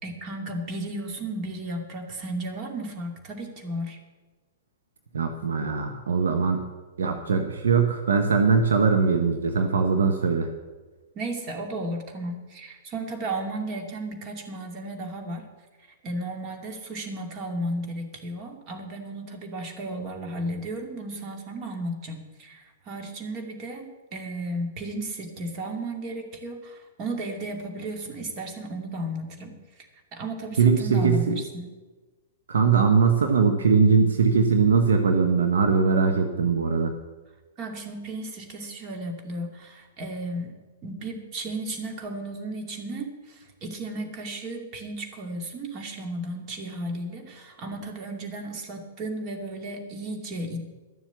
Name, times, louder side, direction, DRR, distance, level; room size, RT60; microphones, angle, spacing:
voice 1, 0.0-4.0 11.1-15.4 16.0-29.5 30.1-31.7 37.6-40.5 40.8-50.6, right 1 dB, 35° right, 3 dB, 2.4 m, -34 dB
voice 2, 5.1-6.6 7.0-10.5 30.6-31.4 32.5-36.9, right 5 dB, 70° right, 5 dB, 1.1 m, -21 dB
12.5 x 7.3 x 8.1 m, 1.3 s
figure-of-eight pair, 105°, 0 cm